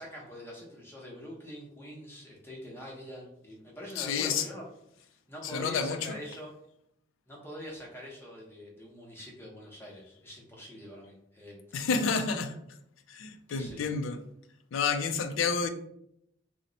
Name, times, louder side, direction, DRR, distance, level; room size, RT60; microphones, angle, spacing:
voice 1, 0.0-4.6 5.3-6.5 7.3-11.6 13.5-13.9, equal, 10° left, -3 dB, 0.7 m, -44 dB
voice 2, 4.0-4.5 5.4-6.2 11.7-12.6 13.1-14.2 14.7-15.7, left 5 dB, 80° left, 8 dB, 0.4 m, -30 dB
2.9 x 2.1 x 3.8 m, 0.75 s
head